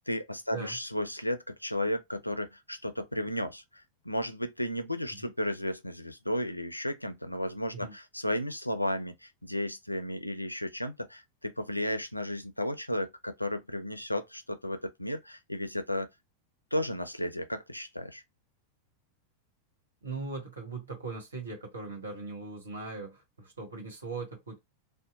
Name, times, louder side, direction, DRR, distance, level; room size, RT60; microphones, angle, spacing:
voice 1, 0.1-16.1 16.7-18.2, left 1 dB, 85° left, 0.4 m, -34 dB
voice 2, 20.0-24.6, right 4 dB, 75° right, 1.2 m, -40 dB
2.8 x 2.1 x 3.8 m
figure-of-eight pair, 90°, 0 cm